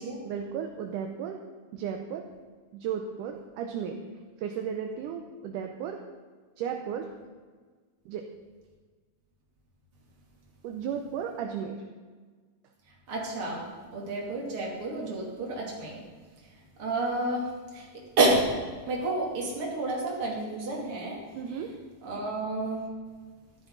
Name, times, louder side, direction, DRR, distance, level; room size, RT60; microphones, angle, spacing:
voice 1, 0.2-1.5 1.7-2.3 2.7-4.0 4.4-6.0 6.6-7.1 8.1-8.3 10.6-11.8 21.3-21.7, right 7 dB, 75° right, 4 dB, 2.2 m, -34 dB
voice 2, 13.1-13.7 13.9-16.0 16.8-17.9 18.2-18.6 18.9-21.2 21.5-21.6 22.0-22.9, right 2 dB, 40° right, -3 dB, 3.4 m, -29 dB
14.0 x 13.0 x 4.0 m, 1.5 s
omnidirectional pair, 4.0 m